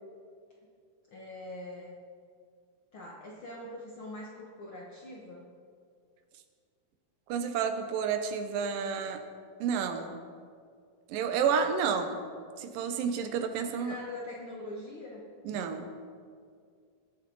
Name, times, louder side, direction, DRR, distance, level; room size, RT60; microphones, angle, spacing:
voice 1, 1.1-2.0 2.9-5.5 13.8-15.3, left 1 dB, 60° left, -3 dB, 1.4 m, -43 dB
voice 2, 7.3-9.2 9.6-10.2 11.1-12.2 12.6-14.0 15.4-15.9, right 6 dB, 80° right, 8 dB, 2.5 m, -30 dB
21.0 x 8.3 x 3.9 m, 2.2 s
omnidirectional pair, 3.9 m